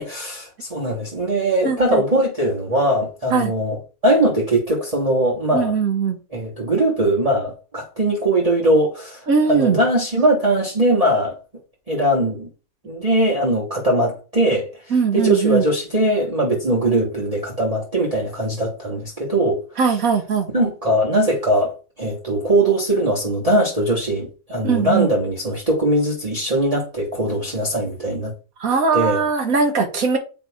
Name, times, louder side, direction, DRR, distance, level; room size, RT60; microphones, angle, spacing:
voice 1, 0.0-5.7 6.3-11.3 11.9-12.5 12.8-19.6 20.5-28.3 28.9-29.2, right 1 dB, 25° right, 1.6 m, -20 dB
voice 2, 1.6-2.0 3.3-3.5 5.5-6.2 9.3-9.8 14.9-15.7 19.8-20.5 24.6-25.1 28.6-30.2, right 5 dB, 75° right, 1.7 m, -20 dB
8.5 x 3.4 x 4.7 m
omnidirectional pair, 1.5 m